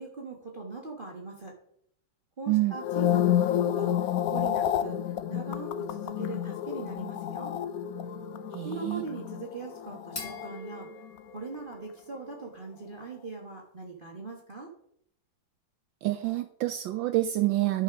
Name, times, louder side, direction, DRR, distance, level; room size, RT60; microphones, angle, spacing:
voice 1, 0.0-1.6 2.4-5.0 5.3-7.5 8.6-10.9 11.3-14.7, right 3 dB, 30° right, 0 dB, 1.3 m, -41 dB
sound 1, 2.7-11.1 11.4-11.7, left 11 dB, 85° left, 0.7 m, -30 dB
sound 2, 7.9-12.8, left 1 dB, 40° left, 2.9 m, -46 dB
voice 2, 8.5-9.0 16.0-17.8, right 16 dB, 75° right, 11 dB, 1.2 m, -27 dB
11.0 x 5.6 x 5.8 m, 0.71 s
omnidirectional pair, 2.2 m